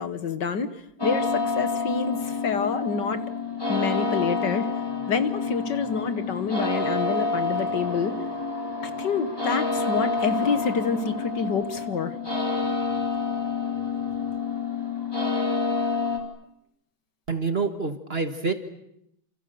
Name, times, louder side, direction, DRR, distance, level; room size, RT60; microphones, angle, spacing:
voice 1, 0.0-3.3 3.7-4.7 5.1-8.2 8.8-12.2, left 5 dB, 55° left, 11 dB, 1.9 m, -28 dB
sound 1, 1.0-16.2, left 4 dB, 10° left, 4.2 m, -28 dB
voice 2, 17.3-18.5, right 4 dB, 30° right, 8 dB, 1.9 m, -27 dB
29.0 x 28.5 x 6.9 m, 0.77 s
omnidirectional pair, 2.3 m